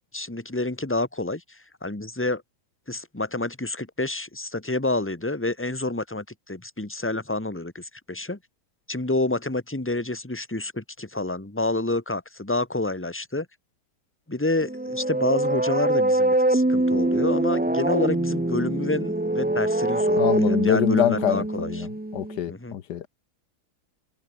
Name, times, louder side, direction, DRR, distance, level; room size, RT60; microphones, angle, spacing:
voice 1, 0.1-2.4 2.9-8.4 8.9-13.5 14.3-21.9 22.5-22.8, left 2 dB, 5° left, 2.0 m, -28 dB
sound 1, 14.6-22.4, right 1 dB, 10° right, 0.4 m, -24 dB
voice 2, 20.2-21.9 22.1-23.1, left 10 dB, 90° left, 1.6 m, -25 dB
omnidirectional pair, 1.7 m